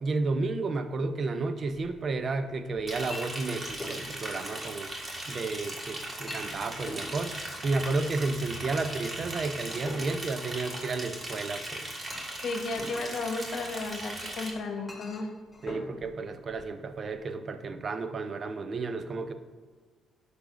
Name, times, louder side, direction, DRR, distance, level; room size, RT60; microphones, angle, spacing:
voice 1, 0.0-4.9 5.3-7.3 7.6-11.9 15.6-19.3, right 3 dB, 45° right, 9 dB, 0.6 m, -32 dB
Chink clink, 1.6-17.2, left 1 dB, 15° left, 2.2 m, -47 dB
Liquid, 2.9-14.5, right 1 dB, 30° right, 1.6 m, -38 dB
voice 2, 12.4-15.3, left 3 dB, 65° left, 4 dB, 1.1 m, -33 dB
10.5 x 6.5 x 2.5 m, 1.5 s
cardioid pair, 90°, 0 cm